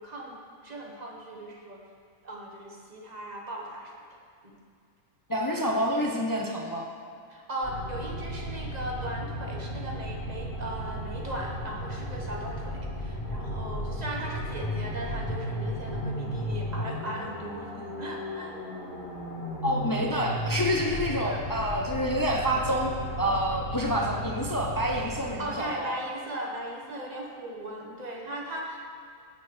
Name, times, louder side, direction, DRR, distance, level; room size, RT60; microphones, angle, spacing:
voice 1, 0.0-1.8 2.2-3.9 4.4-4.6 7.3-18.5 21.2-21.4 23.9-24.1 24.7-24.9 25.4-28.8, right 1 dB, 30° right, -1 dB, 1.2 m, -38 dB
voice 2, 5.3-6.9 19.6-26.0, equal, 30° left, -1 dB, 0.3 m, -28 dB
sound 1, 7.6-25.7, equal, 85° left, 2.2 m, -35 dB
16.0 x 6.8 x 3.2 m, 2.2 s
omnidirectional pair, 1.5 m